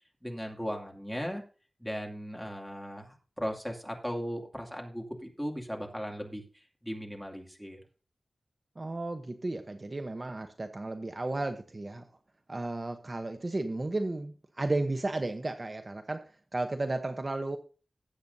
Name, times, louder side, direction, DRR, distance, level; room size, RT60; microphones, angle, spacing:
voice 1, 0.2-1.4 1.8-7.8, equal, ahead, 1 dB, 2.5 m, -37 dB
voice 2, 8.8-12.1 12.5-17.6, right 2 dB, 35° right, 7 dB, 0.9 m, -34 dB
17.5 x 8.0 x 2.7 m, 0.36 s
wide cardioid pair, 90°, 0 cm